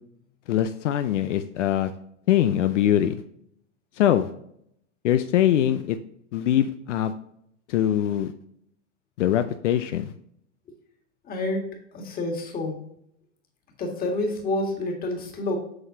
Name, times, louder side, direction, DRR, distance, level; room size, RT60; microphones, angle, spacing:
voice 1, 0.5-1.9 2.3-3.1 4.0-4.3 5.0-6.0 6.3-7.1 7.7-8.3 9.2-10.1, left 11 dB, 75° left, 10 dB, 0.6 m, -22 dB
voice 2, 11.3-12.8 13.8-15.6, left 2 dB, 25° left, 2 dB, 1.9 m, -28 dB
7.8 x 5.9 x 2.7 m, 0.70 s
hypercardioid pair, 125°, 36 cm